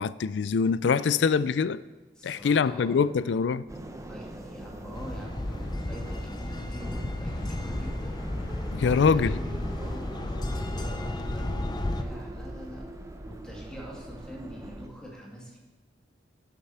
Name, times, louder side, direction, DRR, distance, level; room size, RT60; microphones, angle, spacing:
voice 1, 0.0-1.8 2.2-3.6 8.7-9.3, left 5 dB, 75° left, 0.4 m, -24 dB
voice 2, 2.2-3.4 4.1-8.2 8.7-12.9 13.2-15.6, right 1 dB, 5° left, 2.2 m, -44 dB
sound 1, 3.7-14.9, right 1 dB, 20° right, 0.7 m, -41 dB
sound 2, 4.9-12.0, left 1 dB, 25° left, 0.6 m, -33 dB
9.0 x 7.6 x 5.7 m
head